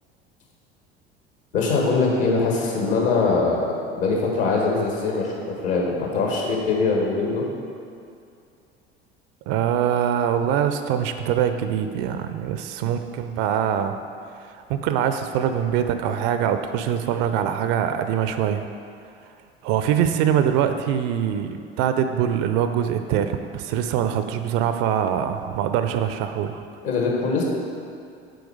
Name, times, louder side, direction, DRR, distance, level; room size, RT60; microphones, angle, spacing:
voice 1, 1.5-3.6 3.9-7.5 26.8-27.4, left 4 dB, 65° left, -2 dB, 1.8 m, -22 dB
voice 2, 9.5-13.9 14.4-18.6 19.6-26.6, right 9 dB, 50° right, 8 dB, 0.5 m, -23 dB
7.8 x 4.8 x 4.8 m, 2.5 s
figure-of-eight pair, 70°, 31 cm